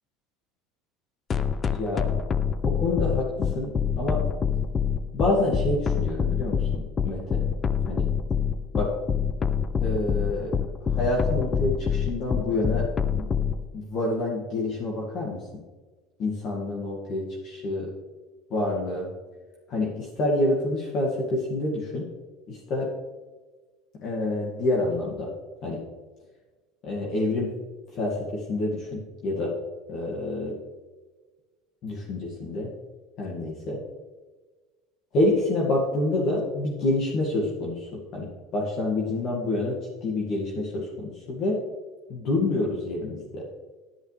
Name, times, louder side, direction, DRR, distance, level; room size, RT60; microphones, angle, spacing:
sound 1, 1.3-13.6, left 7 dB, 25° left, 0.6 m, -25 dB
voice 1, 1.7-2.0 2.6-3.7 4.0-4.2 5.1-7.4 7.9-8.1 8.7-8.9 9.8-10.5 10.9-13.3 13.7-15.4 16.2-17.9 18.5-19.1 19.7-22.0 22.5-22.9 24.0-25.3 25.6-25.8 26.8-27.5 27.9-29.5 29.9-30.6 31.8-32.7 33.2-33.8 35.1-41.6 42.1-43.5, left 2 dB, 50° left, -3 dB, 2.2 m, -27 dB
11.0 x 10.5 x 3.4 m, 1.3 s
supercardioid pair, 130°, 0 cm